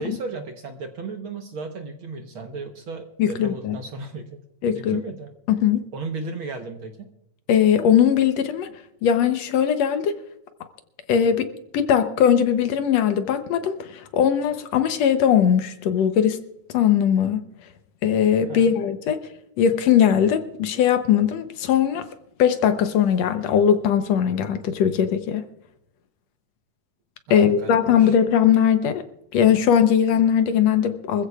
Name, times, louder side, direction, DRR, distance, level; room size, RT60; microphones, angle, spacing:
voice 1, 0.0-4.4 4.7-5.3 5.9-7.1 18.5-18.7 27.3-28.2, right 3 dB, 60° right, 1.5 m, -35 dB
voice 2, 3.2-3.8 4.6-5.0 5.6-5.9 7.5-8.7 9.0-10.2 11.1-16.4 16.7-17.5 18.0-19.2 19.6-22.1 22.4-25.5 27.3-29.0 29.3-31.3, left 8 dB, 70° left, 1.9 m, -20 dB
24.5 x 15.0 x 2.4 m
omnidirectional pair, 3.3 m